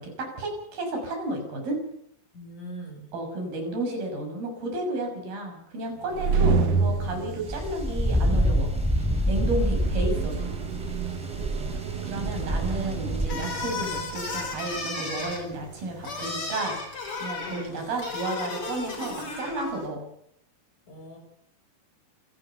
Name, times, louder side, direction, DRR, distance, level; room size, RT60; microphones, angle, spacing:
voice 1, 0.0-1.8 3.1-8.7 9.2-10.5 12.1-16.8 17.2-20.0, right 1 dB, 85° right, 3 dB, 8.0 m, -32 dB
voice 2, 2.3-3.1 9.5-9.9 10.4-10.5 17.4-17.9 20.9-21.2, right 1 dB, 60° left, 2 dB, 8.5 m, -44 dB
sound 1, 6.0-16.5, right 5 dB, 55° right, 1.9 m, -30 dB
sound 2, 7.5-13.3, equal, ahead, 3.2 m, -27 dB
sound 3, 13.2-19.9, left 3 dB, 35° left, 5.1 m, -34 dB
27.5 x 14.5 x 7.0 m, 0.71 s
omnidirectional pair, 4.2 m